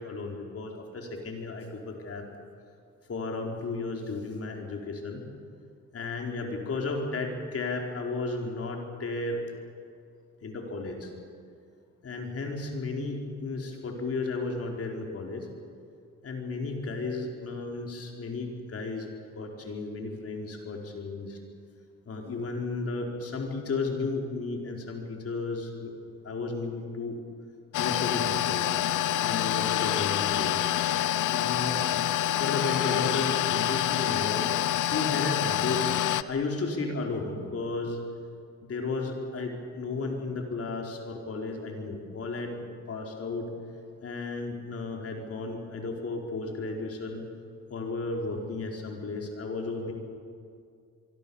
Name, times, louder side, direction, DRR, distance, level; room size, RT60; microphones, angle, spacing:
voice 1, 0.0-2.2 3.1-5.3 5.9-9.4 10.4-11.1 12.0-15.5 16.2-19.1 19.3-21.4 22.1-25.9 26.2-27.2 27.8-28.7 29.2-30.7 31.3-31.8 32.4-34.5 34.9-38.0 38.6-43.5 44.0-47.2 47.7-49.9, left 3 dB, 50° left, 1 dB, 4.5 m, -33 dB
sound 1, 27.7-36.2, left 12 dB, 80° left, 0.9 m, -27 dB
25.0 x 23.5 x 7.2 m, 2.4 s
cardioid pair, 90°, 30 cm